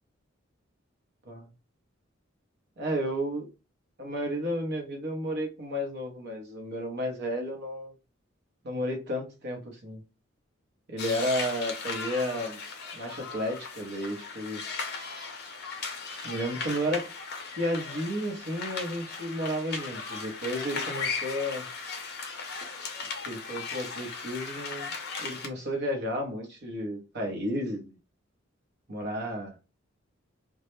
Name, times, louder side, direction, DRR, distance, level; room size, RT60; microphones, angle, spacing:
voice 1, 2.8-3.5 4.0-7.9 8.6-10.0 10.9-12.6 13.0-14.6 16.2-17.1 17.6-21.7 23.3-24.9 25.2-28.0 28.9-29.5, equal, 55° right, 0.8 m, -32 dB
sound 1, 11.0-25.5, left 4 dB, 55° left, 0.5 m, -37 dB
2.2 x 2.0 x 2.9 m
head